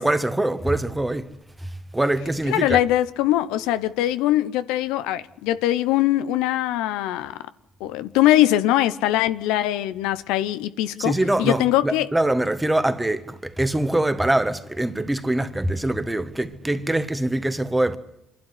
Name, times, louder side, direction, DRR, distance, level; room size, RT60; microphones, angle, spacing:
voice 1, 0.0-2.8 11.0-18.0, right 1 dB, 10° right, 1.6 m, -24 dB
voice 2, 2.5-7.4 7.8-11.1 11.4-12.1, left 14 dB, 85° left, 0.8 m, -22 dB
25.5 x 12.0 x 9.7 m
supercardioid pair, 70°, 0 cm